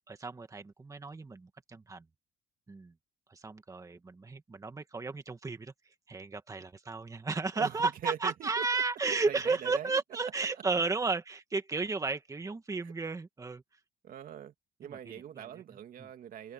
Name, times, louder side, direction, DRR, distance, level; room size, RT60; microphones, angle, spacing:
voice 1, 0.1-2.0 2.7-2.9 3.3-5.7 6.1-13.6 14.8-15.0 15.4-15.5, right 4 dB, 20° right, 1.9 m, -33 dB
voice 2, 7.6-8.8 9.1-10.0 12.8-12.9 14.0-14.5 14.8-16.5, right 10 dB, 55° right, 2.5 m, -42 dB
cardioid pair, 110°, 17 cm